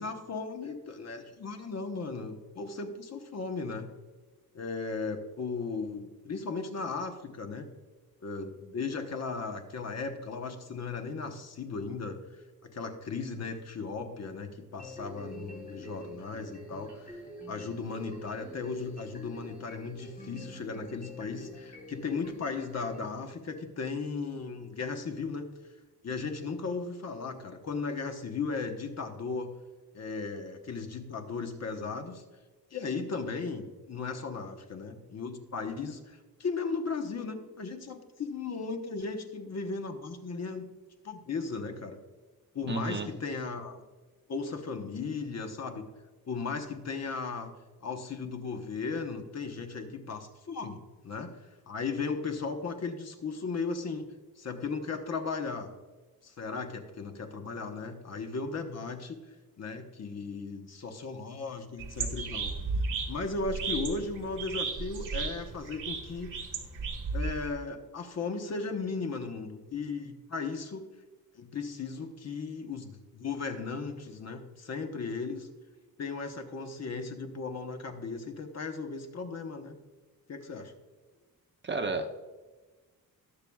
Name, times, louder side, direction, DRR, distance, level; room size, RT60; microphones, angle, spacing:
voice 1, 0.0-3.9 4.5-7.7 8.2-12.2 12.7-17.1 17.5-25.5 26.0-29.5 29.9-32.2 32.7-40.7 41.0-42.0 42.5-43.8 44.3-45.9 46.3-47.5 47.8-51.3 51.7-54.1 54.4-55.7 56.2-62.5 63.1-66.3 67.1-70.9 71.4-75.5 76.0-79.8 80.3-80.7, left 4 dB, 45° left, 5 dB, 1.1 m, -36 dB
sound 1, 14.8-23.1, left 1 dB, 20° left, 2.9 m, -46 dB
voice 2, 42.7-43.1 81.6-82.1, right 3 dB, 30° right, 5 dB, 0.7 m, -32 dB
sound 2, 61.8-67.5, right 4 dB, 55° right, 1.6 m, -34 dB
19.5 x 6.8 x 2.3 m, 1.3 s
wide cardioid pair, 175°, 37 cm